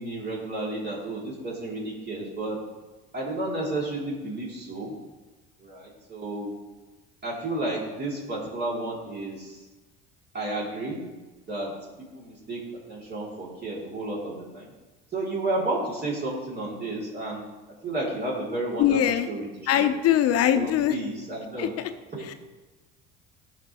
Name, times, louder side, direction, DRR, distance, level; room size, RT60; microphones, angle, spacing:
voice 1, 0.0-2.6 3.1-4.9 5.6-6.5 7.2-9.6 10.3-11.0 11.5-11.7 12.1-12.6 12.9-14.7 15.1-17.4 17.8-19.0 19.3-19.9 20.5-21.7 22.1-22.3, right 2 dB, 35° right, -5 dB, 2.8 m, -32 dB
voice 2, 18.8-19.3 19.7-21.0 21.6-21.9 22.3-22.4, left 11 dB, 55° left, 9 dB, 0.8 m, -22 dB
11.5 x 6.0 x 3.0 m, 1.2 s
supercardioid pair, 85°, 29 cm